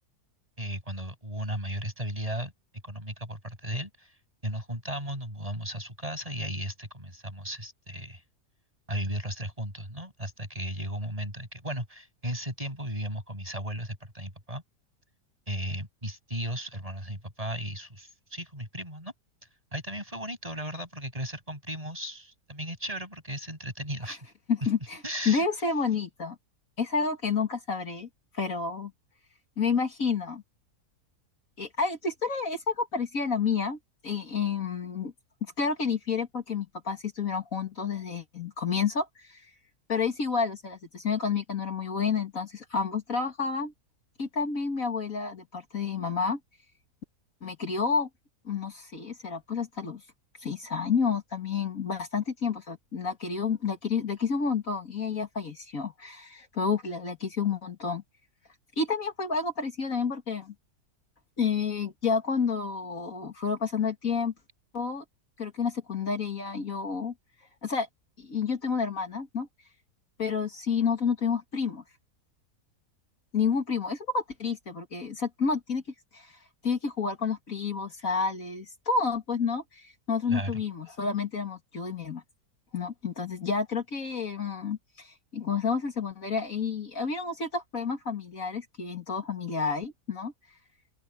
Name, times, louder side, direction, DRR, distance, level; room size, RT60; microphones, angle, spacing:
voice 1, 0.6-2.5 2.8-4.1 4.4-8.2 8.9-14.6 15.5-19.1 19.7-24.3 25.0-25.4 80.3-80.6, equal, 20° right, 8.0 m, -35 dB
voice 2, 24.5-26.4 26.8-28.1 28.3-28.9 29.6-30.4 31.6-33.8 34.0-35.1 35.6-39.5 39.9-43.7 44.2-46.4 47.4-48.1 48.4-50.0 50.4-58.0 58.8-60.5 61.4-64.3 64.7-65.0 65.4-67.1 67.6-67.9 68.2-69.5 70.2-71.8 73.3-75.8 76.1-82.2 82.7-90.3, left 5 dB, 60° left, 2.6 m, -30 dB
open air
omnidirectional pair, 1.6 m